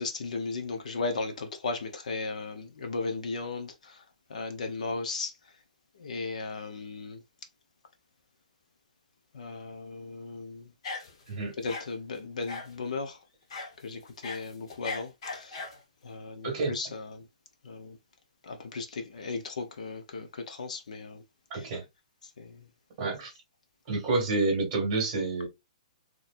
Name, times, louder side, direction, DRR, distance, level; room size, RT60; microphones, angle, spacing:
voice 1, 0.0-4.0 4.3-5.3 6.0-7.2 9.3-10.7 11.6-13.2 13.8-15.6 16.0-17.2 17.6-18.0 18.4-21.2 21.5-21.7 22.4-22.6, left 3 dB, 65° left, 0.9 m, -36 dB
sound 1, 10.8-11.3 11.7-11.9 12.5-12.8 13.5-13.7 14.1-15.8, left 3 dB, 45° left, 1.1 m, -38 dB
voice 2, 16.4-16.7 21.5-21.8 23.0-23.3 23.9-25.5, right 3 dB, 20° right, 2.2 m, -28 dB
4.2 x 3.1 x 2.6 m
hypercardioid pair, 175°, 4 cm